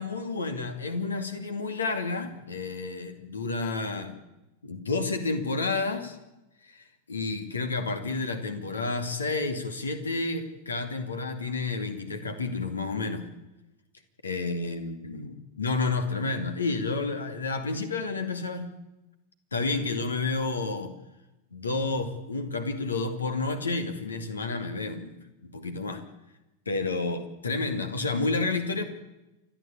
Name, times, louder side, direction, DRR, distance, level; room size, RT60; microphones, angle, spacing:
voice 1, 0.0-4.2 4.6-6.2 6.6-13.3 14.2-18.8 19.5-20.9 21.5-25.2 25.4-26.0 26.7-28.8, left 3 dB, 75° left, 8 dB, 2.4 m, -30 dB
29.0 x 12.5 x 8.5 m, 0.97 s
figure-of-eight pair, 90°, 0 cm